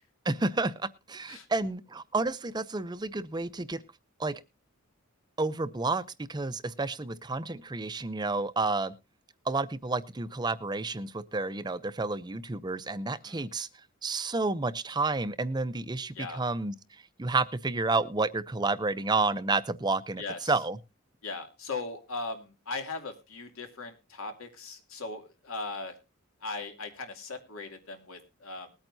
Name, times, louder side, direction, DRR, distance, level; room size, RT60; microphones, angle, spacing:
voice 1, 0.3-3.8 4.2-4.4 5.4-6.0 6.3-8.9 9.5-13.7 14.0-16.7 17.2-20.8, right 3 dB, 20° right, 15 dB, 0.5 m, -30 dB
voice 2, 20.2-20.5 21.2-26.0 26.4-28.7, left 3 dB, 80° left, 5 dB, 2.7 m, -39 dB
20.5 x 8.9 x 2.7 m, 0.27 s
head